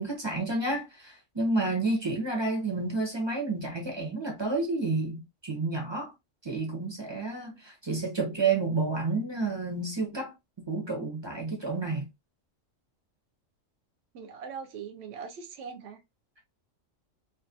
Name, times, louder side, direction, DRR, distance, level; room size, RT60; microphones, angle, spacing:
voice 1, 0.0-6.1 6.4-12.1, right 3 dB, 30° right, 0.6 m, -30 dB
voice 2, 14.1-16.0, right 6 dB, 65° right, 0.8 m, -41 dB
2.4 x 2.4 x 2.6 m
omnidirectional pair, 1.3 m